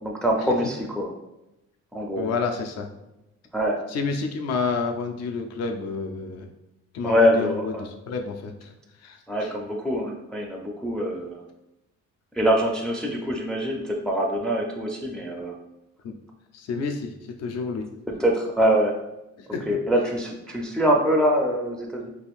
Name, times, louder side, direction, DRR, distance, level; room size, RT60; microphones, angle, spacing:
voice 1, 0.0-1.1 1.9-2.3 3.5-3.8 7.0-7.8 9.3-11.4 12.4-15.5 18.1-18.9 19.7-22.1, equal, 5° left, 0 dB, 0.4 m, -24 dB
voice 2, 2.1-2.9 3.9-6.5 6.9-9.5 16.0-16.1 16.5-17.9 19.4-19.8, left 4 dB, 60° left, 5 dB, 0.5 m, -30 dB
3.5 x 2.5 x 2.4 m, 0.92 s
cardioid pair, 90°, 30 cm